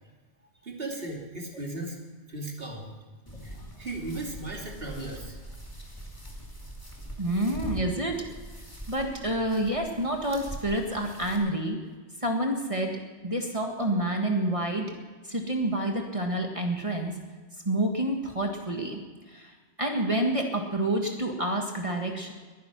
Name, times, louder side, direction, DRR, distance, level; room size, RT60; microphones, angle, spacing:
voice 1, 0.6-2.0 2.3-2.9 3.4-5.4, right 2 dB, 60° right, 0 dB, 3.1 m, -36 dB
sound 1, 3.3-11.4, right 1 dB, 20° left, 2.7 m, -42 dB
voice 2, 7.2-8.2 8.9-11.8 12.2-14.9 15.2-17.2 17.7-19.0 19.3-22.3, right 1 dB, 30° right, 2 dB, 1.8 m, -28 dB
21.5 x 10.5 x 6.2 m, 1.4 s
omnidirectional pair, 1.1 m